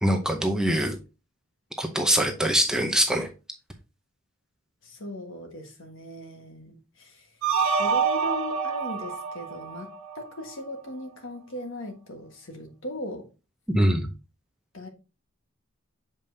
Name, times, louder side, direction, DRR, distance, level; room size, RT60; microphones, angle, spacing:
voice 1, 0.0-1.0 1.8-3.3 13.7-14.1, right 1 dB, 5° right, 0.6 m, -23 dB
voice 2, 4.8-7.3 7.8-13.3 14.7-14.9, left 1 dB, 65° left, 1.4 m, -38 dB
sound 1, 7.4-10.5, right 6 dB, 85° right, 1.3 m, -27 dB
7.2 x 5.1 x 2.7 m
head